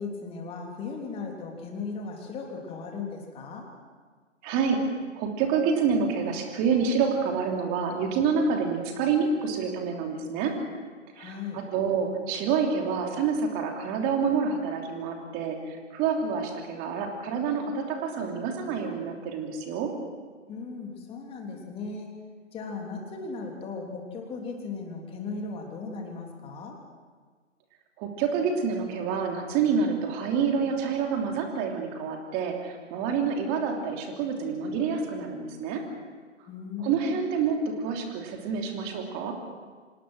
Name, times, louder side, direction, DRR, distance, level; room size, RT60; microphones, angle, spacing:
voice 1, 0.0-3.7 11.1-11.6 20.5-22.1 22.5-26.8 36.5-37.2, left 4 dB, 15° left, 1 dB, 3.2 m, -37 dB
voice 2, 4.4-4.8 5.1-10.5 11.2-19.9 28.0-35.8 36.8-39.3, right 5 dB, 25° right, 2 dB, 3.1 m, -28 dB
26.5 x 18.5 x 6.3 m, 1.5 s
figure-of-eight pair, 135°, 38 cm